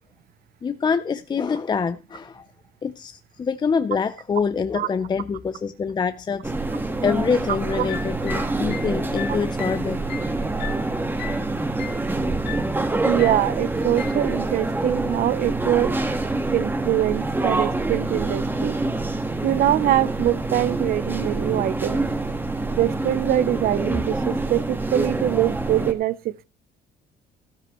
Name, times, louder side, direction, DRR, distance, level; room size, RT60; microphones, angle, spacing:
voice 1, 0.6-2.4 2.8-6.4 7.0-10.0, left 5 dB, 25° left, 0.5 m, -25 dB
sound 1, 6.4-25.9, right 2 dB, 10° right, 1.4 m, -26 dB
sound 2, 7.7-11.5 11.8-12.1 12.4-12.8 13.2-13.5 14.0-14.3, left 10 dB, 75° left, 1.0 m, -37 dB
voice 2, 13.0-15.9 16.5-18.8 19.4-22.0 22.8-26.4, right 13 dB, 60° right, 0.6 m, -23 dB
13.0 x 13.0 x 3.0 m
cardioid pair, 110°, 17 cm